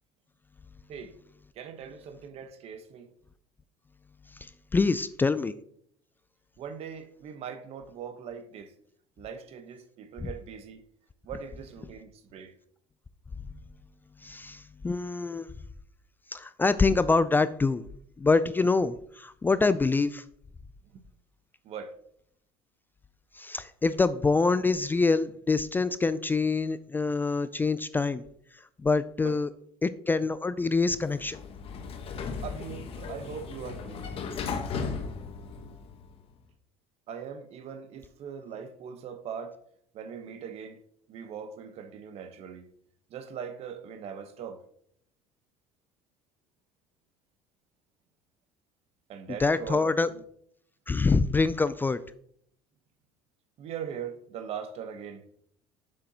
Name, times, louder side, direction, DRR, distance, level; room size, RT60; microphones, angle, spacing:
voice 1, 1.6-3.1 6.6-8.7 9.2-10.8 11.2-12.5 21.6-21.9 29.2-29.3 32.4-34.0 37.1-39.6 39.9-40.8 41.1-42.7 43.1-44.6 49.1-50.2 53.6-55.2, right 7 dB, 55° right, 1.0 m, -40 dB
voice 2, 4.3-5.5 10.2-10.3 14.2-15.5 16.3-17.8 18.2-20.2 23.3-28.2 28.5-29.5 29.8-31.4 49.3-50.1 50.9-52.0, left 3 dB, 15° left, 0.3 m, -25 dB
Sliding door, 30.9-36.2, left 5 dB, 50° left, 1.1 m, -36 dB
7.4 x 6.7 x 2.8 m
supercardioid pair, 100°, 13 cm